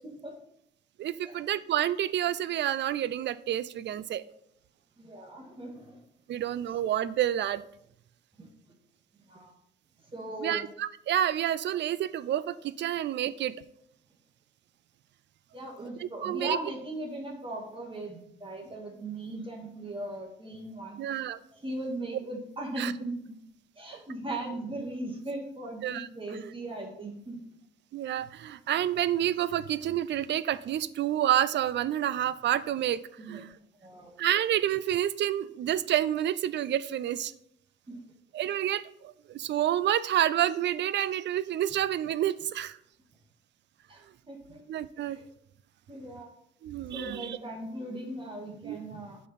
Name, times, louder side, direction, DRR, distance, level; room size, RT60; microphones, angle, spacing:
voice 1, 1.0-4.2 6.3-7.6 10.4-13.6 16.0-16.6 21.0-21.4 22.8-22.9 25.8-26.1 26.3-26.5 27.9-33.0 33.3-33.5 34.2-37.3 38.3-42.8 44.7-45.2 46.6-47.4 48.6-48.8, right 11 dB, 65° right, 17 dB, 0.5 m, -29 dB
voice 2, 5.0-6.0 8.4-8.5 9.3-9.5 10.1-10.7 15.5-21.0 21.5-23.4 23.8-27.4 33.2-33.4 33.8-34.1 37.9-38.0 43.9-44.6 45.0-45.2 45.9-46.3 46.9-49.2, right 2 dB, 25° right, 0 dB, 2.0 m, -38 dB
8.3 x 5.5 x 4.2 m, 0.74 s
cardioid pair, 90°, 20 cm